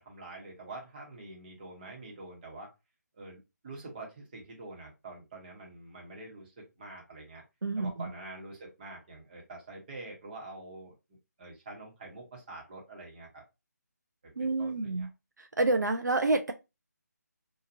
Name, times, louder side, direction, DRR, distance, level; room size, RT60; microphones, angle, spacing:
voice 1, 0.0-2.7 3.1-7.4 7.8-10.9 11.4-13.4 14.2-14.3 14.6-15.1, right 2 dB, 30° right, 1.1 m, -46 dB
voice 2, 7.6-8.1 14.4-15.1 15.4-16.5, right 2 dB, 85° right, 0.5 m, -28 dB
2.8 x 2.4 x 2.5 m
figure-of-eight pair, 155°, 9 cm